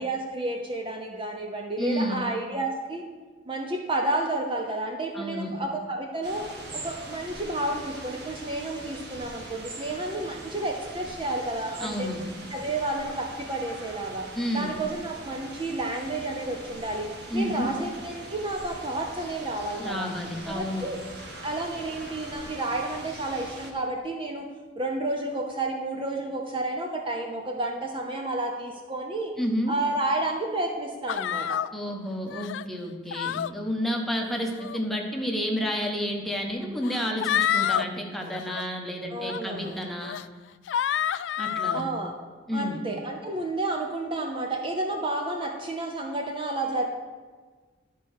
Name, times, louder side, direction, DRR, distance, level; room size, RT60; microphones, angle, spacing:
voice 1, 0.0-3.0 3.5-6.5 6.7-12.1 12.5-14.3 14.5-20.1 20.5-21.0 21.4-24.5 24.8-29.3 29.7-31.6 39.1-39.7 41.7-42.1 42.5-46.8, right 2 dB, 30° right, 1 dB, 0.8 m, -31 dB
voice 2, 1.8-2.2 5.1-5.5 11.8-12.2 14.3-14.7 17.3-17.7 19.8-20.9 29.4-29.8 31.7-40.2 41.4-41.8 42.5-42.8, equal, ahead, 0 dB, 1.1 m, -30 dB
sound 1, 6.2-23.7, right 2 dB, 65° right, 1.3 m, -42 dB
sound 2, 31.1-31.7 32.3-32.7 33.1-33.5 34.4-34.8 35.8-35.9 36.8-37.9 38.3-38.6 39.3-39.4 40.0-40.2 40.7-41.8, left 9 dB, 80° left, 0.3 m, -28 dB
11.0 x 4.5 x 6.4 m, 1.4 s
head